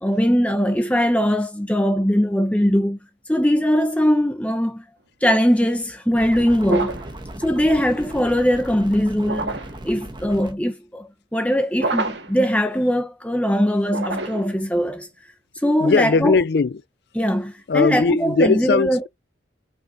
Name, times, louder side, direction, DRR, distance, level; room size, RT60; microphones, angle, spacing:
voice 1, 0.0-3.0 3.3-4.8 5.2-7.0 7.4-9.6 9.8-15.1 15.6-16.4 17.1-19.0, equal, 5° left, 0.9 m, -20 dB
sound 1, 6.1-10.5, right 1 dB, 25° right, 1.4 m, -36 dB
sound 2, 6.6-7.2 9.2-9.8 11.7-12.4 13.8-14.6, right 3 dB, 70° right, 1.7 m, -28 dB
voice 2, 15.6-16.8 17.7-19.1, left 4 dB, 60° left, 0.4 m, -19 dB
6.3 x 5.8 x 4.9 m
head